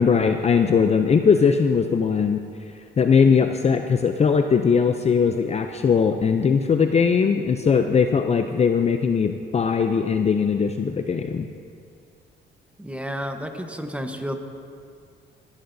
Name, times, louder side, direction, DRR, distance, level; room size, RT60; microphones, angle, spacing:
voice 1, 0.0-2.4 3.0-11.5, left 6 dB, 35° left, 6 dB, 0.5 m, -20 dB
voice 2, 12.8-14.3, equal, 5° right, 5 dB, 1.0 m, -31 dB
19.0 x 11.5 x 2.7 m, 2.3 s
cardioid pair, 90°, 20 cm